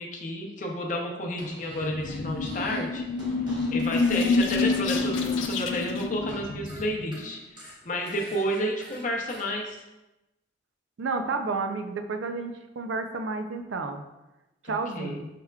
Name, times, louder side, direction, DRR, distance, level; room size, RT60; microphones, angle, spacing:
voice 1, 0.0-9.8 14.7-15.2, equal, 40° left, 0 dB, 0.7 m, -31 dB
Fart, 1.3-2.9 3.1-6.4 6.7-9.5, right 1 dB, 20° right, 1.1 m, -46 dB
sound 1, 1.7-7.1, left 3 dB, 80° left, 0.4 m, -28 dB
voice 2, 11.0-14.0 14.6-15.3, right 4 dB, 80° right, 6 dB, 0.4 m, -31 dB
5.7 x 3.5 x 2.3 m, 1.0 s
head